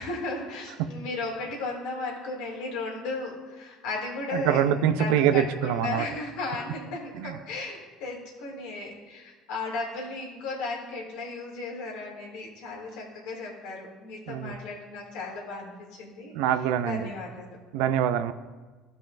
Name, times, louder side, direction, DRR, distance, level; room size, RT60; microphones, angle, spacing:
voice 1, 0.0-4.6 5.0-16.3 16.8-17.5, left 3 dB, 80° left, -2 dB, 2.4 m, -35 dB
voice 2, 4.3-6.1 7.1-7.4 14.3-14.5 16.3-17.1 17.7-18.3, right 9 dB, 80° right, 11 dB, 0.5 m, -24 dB
14.5 x 5.3 x 2.6 m, 1.3 s
supercardioid pair, 85°, 0 cm